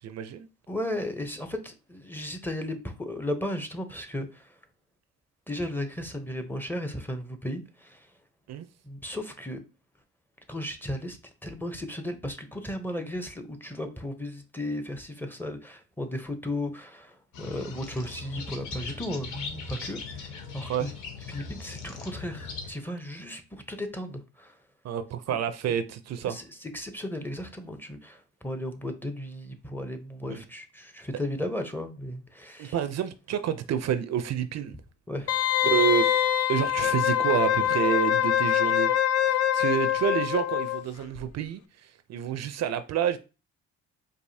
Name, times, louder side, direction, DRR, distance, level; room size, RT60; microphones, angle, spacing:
voice 1, 0.0-0.5 8.5-8.7 20.7-20.9 24.8-26.4 30.3-30.4 32.6-34.8 35.6-36.1 36.5-38.9 39.3-43.2, right 8 dB, 60° right, 0.5 m, -28 dB
voice 2, 0.7-4.5 5.5-8.1 8.8-9.6 10.5-11.2 11.4-20.9 21.3-24.6 25.7-25.8 26.3-32.8 35.1-35.3, left 1 dB, 5° left, 0.7 m, -35 dB
sound 1, 17.3-22.7, left 4 dB, 75° left, 0.9 m, -40 dB
Wind instrument woodwind instrument, 35.3-40.8 41.1-41.2, left 11 dB, 55° left, 0.4 m, -24 dB
4.7 x 2.5 x 2.7 m
cardioid pair, 90°, 30 cm